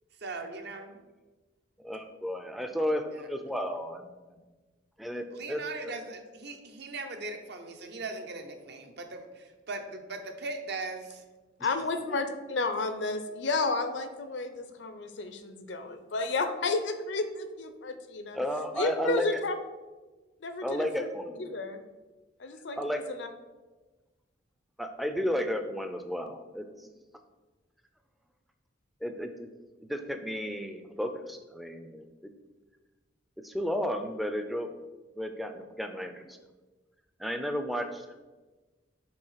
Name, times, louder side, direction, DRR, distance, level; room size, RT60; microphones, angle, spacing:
voice 1, 0.2-1.0 3.0-3.3 5.3-11.2, right 3 dB, 60° right, 6 dB, 0.7 m, -39 dB
voice 2, 1.8-4.4 5.0-5.9 12.1-12.2 18.3-19.4 20.6-21.5 22.8-23.0 24.8-26.9 29.0-29.5 29.9-32.3 33.4-34.7 35.2-36.4 37.2-38.1, equal, ahead, 6 dB, 0.4 m, -33 dB
voice 3, 11.6-18.4 18.7-19.5 20.4-21.1 21.4-21.8 22.4-22.8 23.1-23.3, left 3 dB, 70° left, 9 dB, 0.6 m, -32 dB
5.4 x 3.7 x 5.7 m, 1.2 s
head